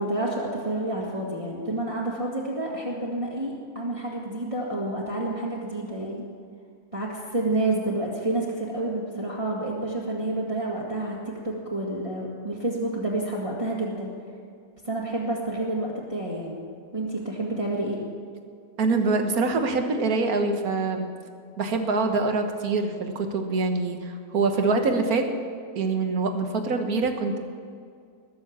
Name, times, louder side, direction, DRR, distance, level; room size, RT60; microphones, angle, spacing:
voice 1, 0.0-6.2 6.9-14.1 14.8-16.6 16.9-18.0, right 2 dB, 20° right, -5 dB, 1.9 m, -29 dB
voice 2, 18.8-21.1 21.6-25.2 25.8-27.4, right 3 dB, 80° right, 5 dB, 1.7 m, -24 dB
20.5 x 7.0 x 7.2 m, 2.2 s
omnidirectional pair, 1.5 m